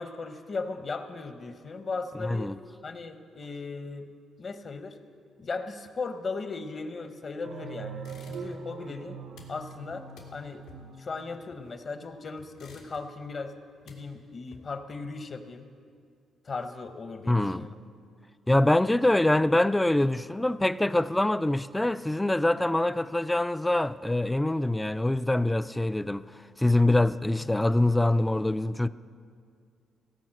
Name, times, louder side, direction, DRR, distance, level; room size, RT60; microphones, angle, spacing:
voice 1, 0.0-2.5 2.8-4.1 4.4-5.0 5.4-9.2 9.5-10.1 10.3-10.6 11.0-13.5 13.8-15.6 16.4-17.8, left 4 dB, 40° left, 0.9 m, -37 dB
voice 2, 2.2-2.5 17.3-17.7 18.5-26.2 26.6-28.9, left 1 dB, 10° left, 0.3 m, -24 dB
sound 1, 7.4-11.9, right 5 dB, 70° right, 0.9 m, -42 dB
sound 2, 8.0-8.8 9.0-11.9 12.4-13.3 13.6-14.9, left 4 dB, 90° left, 2.1 m, -53 dB
17.0 x 5.6 x 7.7 m
cardioid pair, 90°, 0 cm